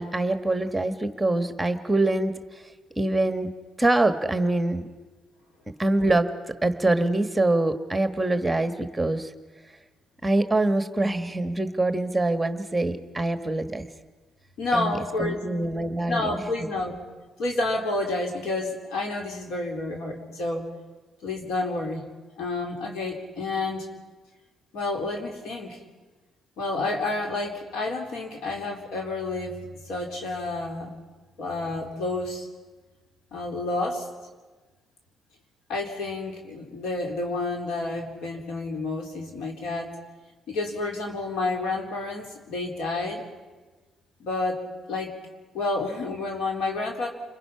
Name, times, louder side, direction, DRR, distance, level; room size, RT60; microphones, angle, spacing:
voice 1, 0.0-2.4 3.0-3.5 3.8-4.9 5.8-6.3 6.6-9.3 10.2-13.9 14.7-16.7, right 2 dB, 10° right, 8 dB, 1.4 m, -24 dB
voice 2, 14.6-15.4 16.1-17.0 17.4-20.7 21.2-22.1 22.4-23.9 24.7-25.8 26.6-29.6 29.9-30.9 31.4-32.5 33.3-34.1 35.7-39.9 40.5-43.3 44.2-44.6 44.9-45.1 45.5-47.1, left 2 dB, 80° left, 1 dB, 4.0 m, -29 dB
29.5 x 22.0 x 5.7 m, 1.3 s
cardioid pair, 90°, 0 cm